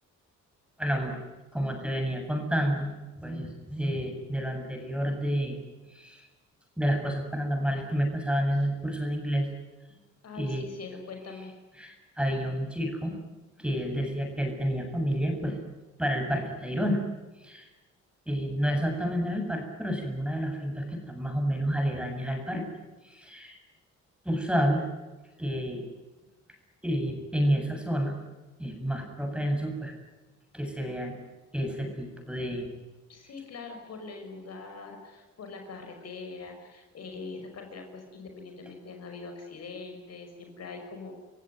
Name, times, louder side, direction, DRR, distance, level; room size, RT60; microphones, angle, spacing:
voice 1, 0.8-1.2 1.5-2.9 3.2-5.6 5.9-6.3 6.8-9.5 10.4-10.7 11.8-13.2 13.6-15.6 16.0-17.0 17.4-17.7 18.3-22.6 23.0-23.6 24.2-24.8 25.4-25.9 26.8-28.1 28.6-29.9 30.5-31.1 31.5-32.7, equal, 5° right, 3 dB, 7.6 m, -29 dB
voice 2, 10.2-11.5 33.1-41.1, left 4 dB, 55° left, 4 dB, 5.9 m, -42 dB
28.5 x 16.0 x 9.4 m, 1.1 s
cardioid pair, 90°, 30 cm